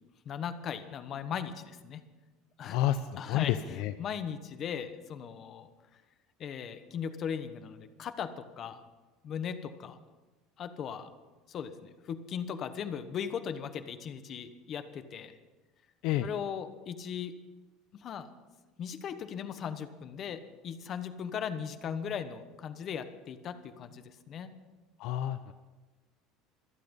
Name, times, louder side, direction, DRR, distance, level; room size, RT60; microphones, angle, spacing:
voice 1, 0.2-2.0 2.6-2.8 3.1-5.7 6.4-8.8 9.2-10.0 10.6-11.1 11.5-15.4 16.2-17.3 17.9-18.3 18.8-24.5, left 7 dB, 35° left, 11 dB, 1.1 m, -38 dB
voice 2, 2.6-3.9 16.0-16.3 25.0-25.5, left 12 dB, 65° left, 11 dB, 0.6 m, -30 dB
25.0 x 8.6 x 5.4 m, 1.2 s
cardioid pair, 140°, 0 cm